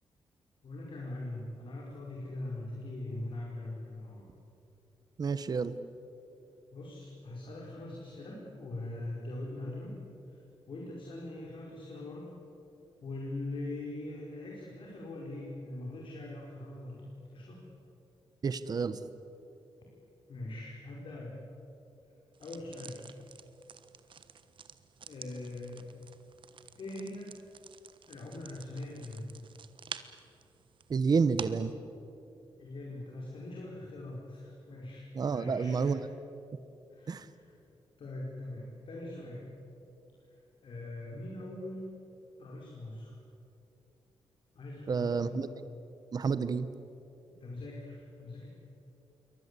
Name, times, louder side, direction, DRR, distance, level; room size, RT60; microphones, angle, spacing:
voice 1, 0.6-4.3 6.7-10.0 10.3-10.4 10.7-12.3 13.0-17.6 20.3-21.4 22.4-23.1 25.1-25.9 26.8-27.3 28.1-29.3 32.6-35.9 36.9-37.6 38.0-39.5 40.3-41.9 42.4-43.1 44.5-45.5 47.4-48.5, left 2 dB, 60° left, -2 dB, 4.9 m, -42 dB
voice 2, 5.2-5.7 18.4-19.0 30.9-31.7 35.1-36.0 37.1-37.3 44.9-45.5 46.1-46.7, right 5 dB, 40° right, 13 dB, 1.0 m, -29 dB
sound 1, 22.3-31.7, right 7 dB, 55° right, 1.3 m, -49 dB
28.0 x 23.5 x 8.3 m, 2.9 s
wide cardioid pair, 130°, 10 cm